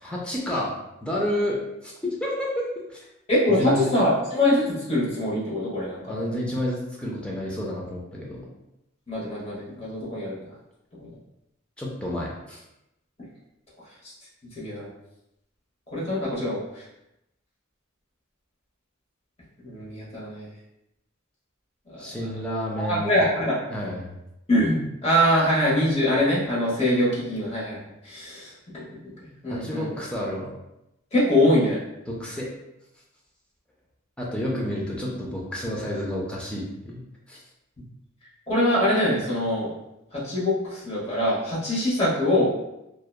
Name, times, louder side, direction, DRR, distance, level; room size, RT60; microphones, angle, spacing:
voice 1, 0.0-0.7 1.0-2.5 2.9-3.0 3.5-3.9 6.1-8.5 11.8-12.6 22.0-23.2 23.7-24.1 29.5-30.5 32.1-32.5 34.2-37.0 37.3-37.4, left 1 dB, 5° left, -3 dB, 0.4 m, -30 dB
voice 2, 3.3-6.2 9.1-10.4 10.9-11.1 14.0-14.1 14.5-14.9 15.9-16.8 19.6-20.5 21.9-22.0 22.8-23.6 24.5-29.1 29.4-29.9 31.1-31.8 38.5-39.7 40.1-42.5, left 1 dB, 30° left, -7 dB, 0.9 m, -24 dB
2.8 x 2.1 x 2.2 m, 0.88 s
head